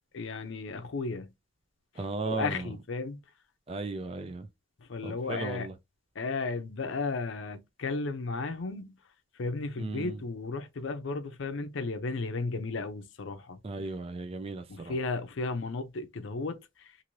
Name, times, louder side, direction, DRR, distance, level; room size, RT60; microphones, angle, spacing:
voice 1, 0.1-1.3 2.2-3.2 4.9-5.7 6.2-8.9 9.4-13.6 14.7-16.9, left 3 dB, 75° left, 0.5 m, -34 dB
voice 2, 2.0-2.7 3.7-4.5 5.0-5.7 9.8-10.2 13.6-15.0, right 3 dB, 30° right, 0.4 m, -36 dB
2.6 x 2.6 x 2.9 m
head